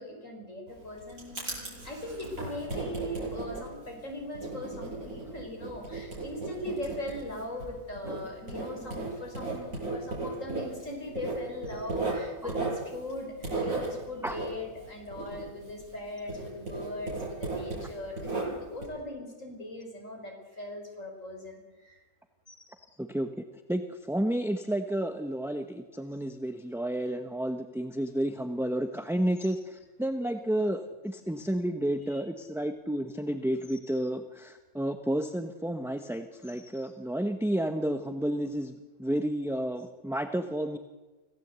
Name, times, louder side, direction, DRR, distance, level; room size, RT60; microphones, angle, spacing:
voice 1, 0.0-22.0 32.1-32.2, left 1 dB, 60° left, 2 dB, 6.0 m, -40 dB
Writing, 0.7-16.0 16.3-18.8, right 3 dB, 65° right, 8.4 m, -36 dB
voice 2, 23.0-38.7 39.0-40.8, right 1 dB, ahead, 7 dB, 1.0 m, -31 dB
25.0 x 17.0 x 8.2 m, 1.2 s
omnidirectional pair, 1.5 m